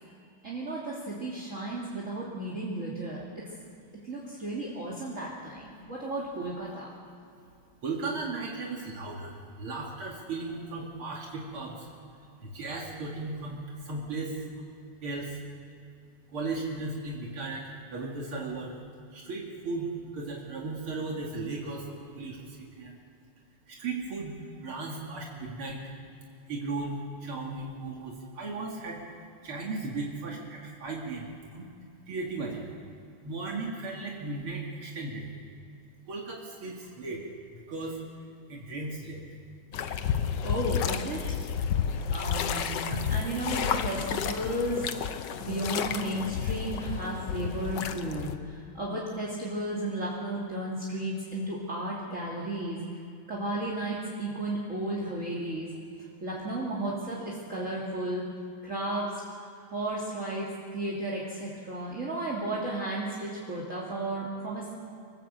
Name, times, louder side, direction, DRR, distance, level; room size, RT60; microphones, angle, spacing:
voice 1, 0.4-3.5 4.0-6.9 40.4-41.2 41.9-52.9 53.3-55.7 56.2-58.2 58.6-59.1 59.7-64.7, right 1 dB, 35° right, -5 dB, 3.0 m, -34 dB
voice 2, 7.8-11.9 12.4-14.4 15.0-15.4 16.3-18.8 19.1-23.0 23.7-25.8 26.5-29.0 29.4-31.7 32.1-32.7 33.2-35.3 36.1-37.2 37.5-38.0 38.5-39.2, right 3 dB, 80° right, -2 dB, 3.1 m, -36 dB
sound 1, 39.7-48.4, left 7 dB, 65° left, 1.4 m, -31 dB
26.5 x 14.5 x 8.0 m, 2.5 s
omnidirectional pair, 2.3 m